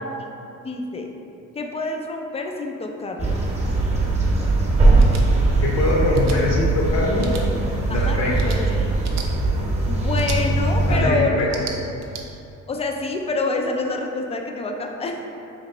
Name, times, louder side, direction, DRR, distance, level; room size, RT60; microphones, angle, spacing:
voice 1, 0.6-1.1 1.5-3.4 8.0-8.5 9.9-11.6 12.7-15.3, left 3 dB, 20° left, 3 dB, 0.4 m, -27 dB
sound 1, 3.2-11.0, right 2 dB, 20° right, 0.9 m, -20 dB
sound 2, 5.0-5.2 6.1-6.4 7.2-7.4 8.3-8.6 9.0-9.3 10.1-10.4 11.4-12.2, right 6 dB, 60° right, 0.5 m, -34 dB
voice 2, 5.6-7.3 7.9-8.5 10.9-11.5, left 2 dB, 60° left, -2 dB, 0.8 m, -23 dB
3.0 x 2.8 x 4.4 m, 2.8 s
cardioid pair, 90°, 30 cm